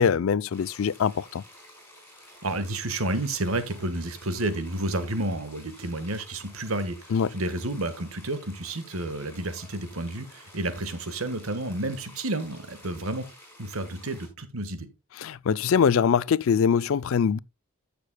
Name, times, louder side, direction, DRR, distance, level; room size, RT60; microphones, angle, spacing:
voice 1, 0.0-1.4 7.1-7.3 15.2-17.4, left 6 dB, 70° left, 0.4 m, -23 dB
sound 1, 0.5-14.3, left 1 dB, 10° left, 5.1 m, -51 dB
voice 2, 2.4-13.3 13.6-14.9, right 2 dB, 90° right, 1.4 m, -31 dB
14.5 x 6.8 x 2.2 m
head